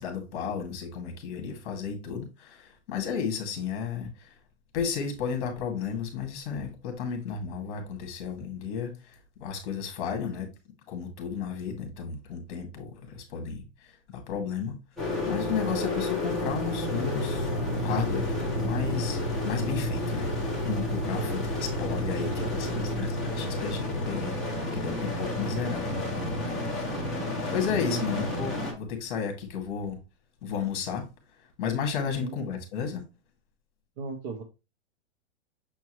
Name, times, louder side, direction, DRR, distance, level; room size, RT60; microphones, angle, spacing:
voice 1, 0.0-4.3 4.7-9.2 9.4-10.5 10.9-13.9 14.3-14.8 15.3-17.5 17.8-20.3 20.6-26.8 27.1-30.0 30.4-31.1 31.6-33.0, left 6 dB, 45° left, 2.2 m, -33 dB
sound 1, 15.0-28.7, left 1 dB, ahead, 1.9 m, -30 dB
voice 2, 22.2-23.0 27.9-28.4 32.2-32.4 34.0-34.4, right 4 dB, 25° right, 0.5 m, -38 dB
7.1 x 4.5 x 3.1 m
supercardioid pair, 165°, 36 cm